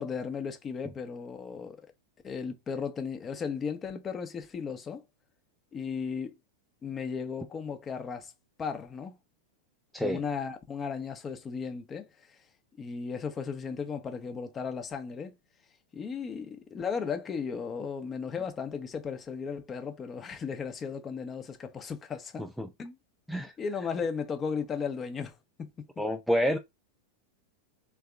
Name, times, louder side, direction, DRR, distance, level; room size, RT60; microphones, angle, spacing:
voice 1, 0.0-1.8 2.2-5.0 5.7-6.3 6.8-8.3 8.6-9.2 10.0-12.4 12.8-15.4 15.9-22.5 22.8-23.0 23.6-25.9, left 6 dB, 20° left, 0.8 m, -35 dB
voice 2, 22.4-22.7 23.3-23.5 26.0-26.6, equal, ahead, 0.5 m, -28 dB
3.7 x 3.4 x 3.4 m
figure-of-eight pair, 90°, 0 cm